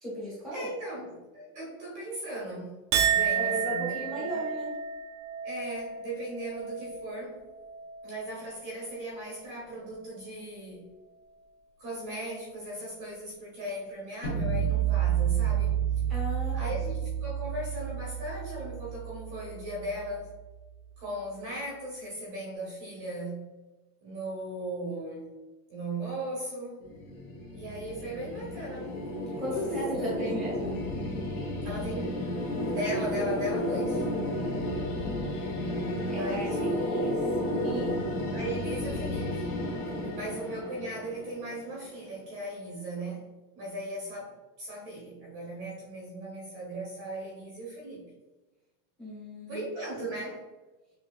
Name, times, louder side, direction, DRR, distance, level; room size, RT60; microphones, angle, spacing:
voice 1, 0.0-0.7 3.3-4.7 16.1-16.8 29.4-30.7 34.9-37.2 37.6-37.9 39.9-40.3 49.0-49.7, equal, ahead, -7 dB, 1.1 m, -36 dB
voice 2, 0.5-2.7 3.0-4.3 5.4-7.4 8.0-10.9 11.8-15.8 16.5-20.3 21.0-23.4 24.0-25.3 25.7-26.8 27.5-29.0 29.9-30.3 31.6-32.2 32.6-34.0 36.1-37.0 38.3-39.4 40.1-43.3 43.5-48.0 49.5-50.4, right 1 dB, 30° right, -3 dB, 0.9 m, -38 dB
Chink clink, 2.9-9.5 9.9-10.4, right 7 dB, 55° right, 0.6 m, -32 dB
sound 1, 14.2-20.2, right 9 dB, 25° left, 0.3 m, -30 dB
sound 2, 26.8-41.9, left 1 dB, 50° left, 1.2 m, -32 dB
6.2 x 2.7 x 2.3 m, 1.1 s
supercardioid pair, 175°, 47 cm